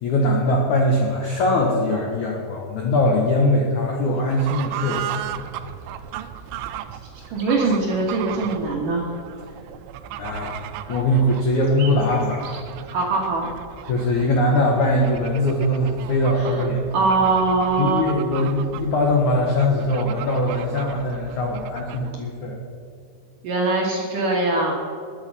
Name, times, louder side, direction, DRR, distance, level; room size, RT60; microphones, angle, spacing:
voice 1, 0.0-5.0 10.2-10.5 10.9-12.5 13.9-17.1 17.8-22.6, left 1 dB, 85° left, 0 dB, 1.7 m, -21 dB
Fowl / Bird, 4.1-22.2, right 11 dB, 85° right, 3.0 m, -36 dB
sound 1, 5.5-7.8 10.2-10.3 10.6-10.7 10.9-12.6, right 4 dB, 45° right, 3.1 m, -44 dB
voice 2, 7.3-9.0 12.9-13.5 16.4-16.7 16.9-18.2 23.4-24.7, right 3 dB, 60° right, -1 dB, 2.3 m, -22 dB
21.0 x 8.2 x 5.4 m, 2.3 s
omnidirectional pair, 5.7 m